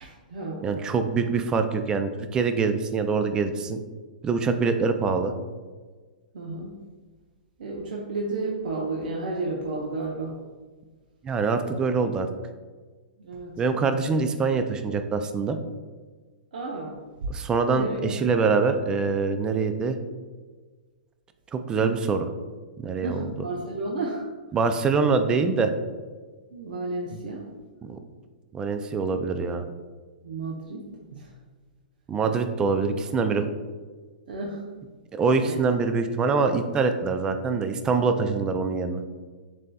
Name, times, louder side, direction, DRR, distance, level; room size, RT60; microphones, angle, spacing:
voice 1, 0.0-0.7 6.3-6.7 7.6-10.4 13.2-13.6 16.5-17.3 17.7-18.2 23.0-24.2 26.5-27.4 30.2-30.8 31.1-31.3 34.3-34.6 35.4-35.6, right 2 dB, 75° right, -2 dB, 0.7 m, -32 dB
voice 2, 0.6-3.8 4.2-5.3 11.2-12.3 13.6-15.6 17.3-20.0 21.5-22.3 22.8-23.2 24.5-25.7 27.8-28.0 28.5-29.6 32.1-33.5 35.1-39.0, right 4 dB, 15° right, 8 dB, 0.3 m, -24 dB
7.3 x 2.7 x 2.2 m, 1.4 s
hypercardioid pair, 140°, 5 cm